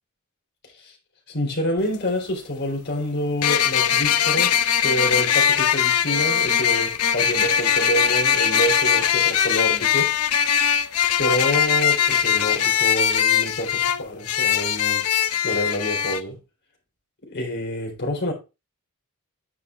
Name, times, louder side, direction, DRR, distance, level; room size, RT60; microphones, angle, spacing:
voice 1, 1.3-4.6 4.8-10.2 11.2-15.0 15.4-16.4 17.2-18.3, equal, 50° left, 4.1 m, -27 dB
sound 1, 1.8-1.9 3.4-16.2, left 8 dB, 85° left, 0.7 m, -21 dB
9.7 x 6.3 x 3.5 m
head